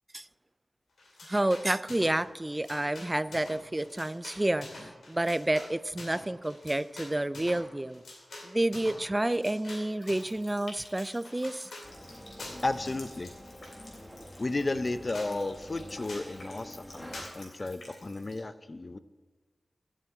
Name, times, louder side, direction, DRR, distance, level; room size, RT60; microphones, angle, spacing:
sound 1, 1.0-2.2 2.5-10.3 10.8-11.9 12.4-12.8 13.1-14.0 14.5-14.6 14.8-14.9 15.1-15.3 16.1-16.3 17.1-17.3, left 2 dB, 85° left, 2.4 m, -46 dB
voice 1, 1.2-8.0 8.4-11.7, right 1 dB, 25° right, 16 dB, 0.4 m, -30 dB
Water tap faucet, 10.0-18.4, left 2 dB, 70° left, 3.4 m, -53 dB
sound 2, 11.8-17.3, equal, 5° left, 1.7 m, -47 dB
voice 2, 12.6-13.3 14.4-19.0, left 2 dB, 45° left, 12 dB, 0.6 m, -33 dB
8.5 x 7.5 x 8.3 m, 1.3 s
cardioid pair, 45°, 0 cm